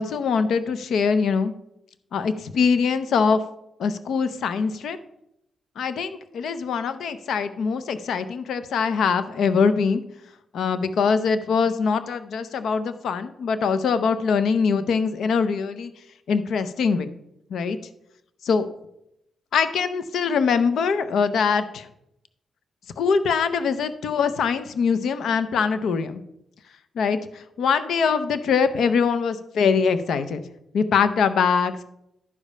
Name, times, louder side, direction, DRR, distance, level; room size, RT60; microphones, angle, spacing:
voice 1, 0.0-1.5 2.1-3.4 3.8-5.0 5.8-10.0 10.5-15.9 16.3-17.1 17.5-17.8 18.4-18.7 19.5-21.9 23.0-26.2 26.9-30.4 30.7-31.8, left 5 dB, 80° left, 12 dB, 0.6 m, -23 dB
11.0 x 5.0 x 5.4 m, 0.81 s
cardioid pair, 95°, 0 cm